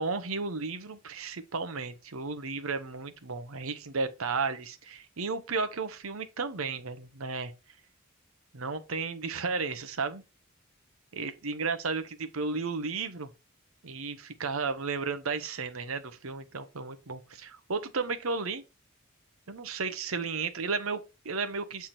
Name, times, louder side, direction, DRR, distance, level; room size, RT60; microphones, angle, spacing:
voice 1, 0.0-7.5 8.5-10.2 11.1-13.3 13.8-18.6 19.5-21.9, right 4 dB, 75° right, 0.9 m, -33 dB
7.5 x 3.6 x 4.2 m
head